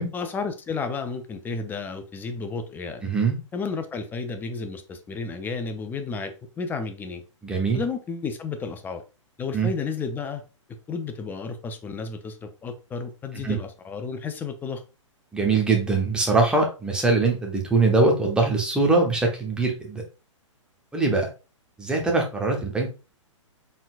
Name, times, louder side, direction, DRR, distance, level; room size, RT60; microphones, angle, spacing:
voice 1, 0.1-3.0 3.5-7.2 7.7-9.0 9.4-10.4 10.9-14.8, left 4 dB, 10° left, 8 dB, 0.5 m, -32 dB
voice 2, 3.0-3.4 7.4-7.8 9.5-9.7 13.4-13.6 15.3-20.0 20.9-21.3 21.8-22.9, right 3 dB, 5° right, 0 dB, 1.0 m, -22 dB
4.3 x 3.7 x 2.5 m, 0.31 s
figure-of-eight pair, 120°, 16 cm